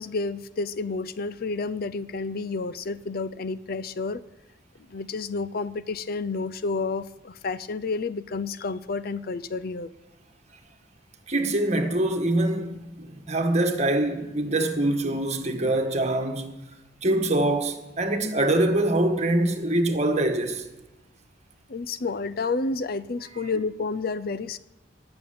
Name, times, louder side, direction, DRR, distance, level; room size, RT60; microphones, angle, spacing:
voice 1, 0.0-4.2 4.9-9.9 21.7-24.6, left 3 dB, 55° left, 0.5 m, -30 dB
voice 2, 11.3-16.6 17.0-20.7, right 1 dB, 40° right, 1.7 m, -24 dB
19.0 x 7.0 x 8.7 m
head